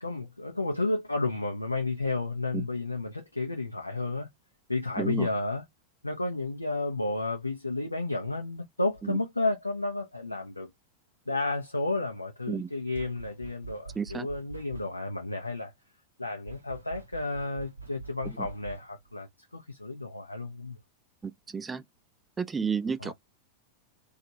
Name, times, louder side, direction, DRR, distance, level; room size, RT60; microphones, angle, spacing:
voice 1, 0.0-4.3 4.7-5.6 6.0-10.7 11.3-15.7 16.2-19.3 19.5-20.8 23.0-23.1, left 2 dB, 85° left, 0.5 m, -32 dB
voice 2, 5.0-5.3 9.0-9.2 12.5-12.7 14.0-14.3 18.4-18.5 21.2-21.8 22.4-23.1, right 6 dB, 15° right, 0.3 m, -32 dB
sound 1, 12.9-15.2 16.5-19.1, right 4 dB, 90° right, 0.7 m, -45 dB
2.9 x 2.3 x 2.7 m
figure-of-eight pair, 90°, 0 cm